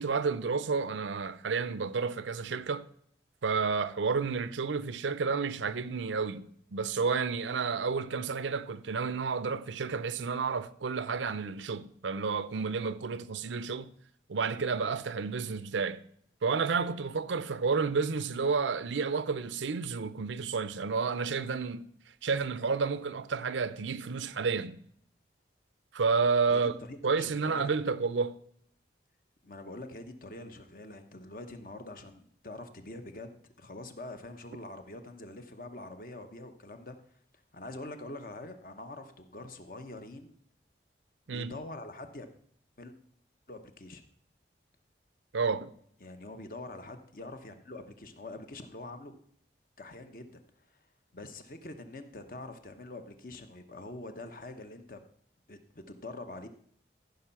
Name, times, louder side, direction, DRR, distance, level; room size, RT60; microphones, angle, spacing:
voice 1, 0.0-2.9 3.4-13.9 14.3-16.0 16.4-21.8 22.2-24.8 25.9-26.8 27.0-28.4 41.3-41.5 45.3-45.7, right 5 dB, 85° right, 0.6 m, -31 dB
voice 2, 26.5-27.7 29.4-37.0 37.5-40.3 41.3-42.3 42.8-42.9 43.5-44.0 46.0-49.1 49.8-50.4 50.7-50.8 51.1-55.0 55.5-55.6 55.9-56.5, left 2 dB, 50° left, 0.9 m, -45 dB
14.0 x 5.4 x 5.8 m
head